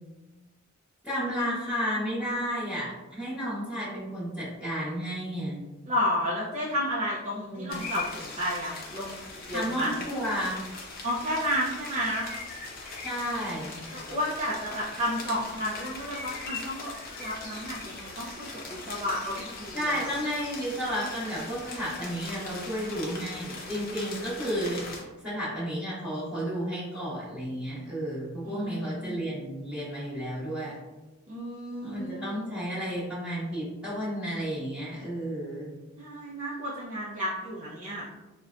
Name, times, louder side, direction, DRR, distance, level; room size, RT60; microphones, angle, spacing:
voice 1, 1.0-5.6 7.3-7.8 9.5-10.6 13.0-13.9 19.7-24.9 25.2-30.8 31.8-35.7, equal, 5° right, -14 dB, 0.9 m, -32 dB
voice 2, 5.9-9.9 11.0-12.3 13.9-16.9 17.2-20.0 28.5-29.2 31.3-32.4 36.0-38.0, equal, 35° right, -7 dB, 0.5 m, -32 dB
sound 1, 7.7-25.0, left 3 dB, 45° left, 0.6 m, -40 dB
3.9 x 2.1 x 2.4 m, 1.1 s
head